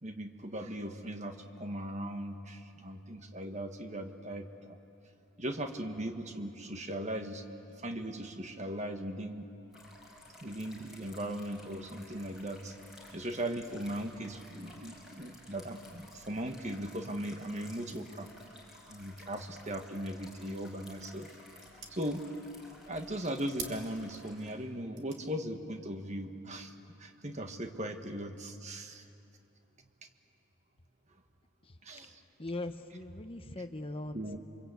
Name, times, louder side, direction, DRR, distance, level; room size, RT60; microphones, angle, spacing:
voice 1, 0.0-4.8 5.4-7.4 7.8-9.5 10.4-12.7 13.1-18.3 18.9-21.3 21.9-22.2 22.9-26.7 27.0-29.0 31.8-32.2 34.1-34.4, right 1 dB, 30° right, 6 dB, 1.4 m, -38 dB
sound 1, 9.7-24.5, left 1 dB, ahead, 5.3 m, -55 dB
sound 2, 20.6-27.4, right 6 dB, 55° right, 2.4 m, -52 dB
voice 2, 32.4-34.4, left 2 dB, 25° left, 8 dB, 0.9 m, -40 dB
28.5 x 25.0 x 8.3 m, 2.8 s
head